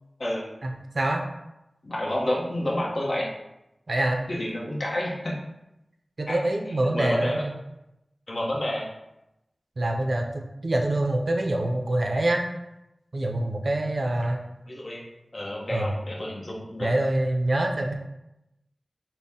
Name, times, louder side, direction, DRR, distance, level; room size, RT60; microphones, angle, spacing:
voice 1, 0.6-1.2 3.9-4.2 6.2-7.5 9.8-12.4 13.1-14.4 15.7-15.9 16.8-17.9, right 1 dB, 60° right, 2 dB, 0.4 m, -25 dB
voice 2, 1.8-3.3 4.3-5.4 6.3-6.4 6.9-7.4 8.3-8.9 14.7-15.0 15.3-16.9, left 1 dB, 50° left, -4 dB, 0.8 m, -29 dB
4.0 x 2.1 x 3.5 m, 0.90 s
wide cardioid pair, 80°, 0 cm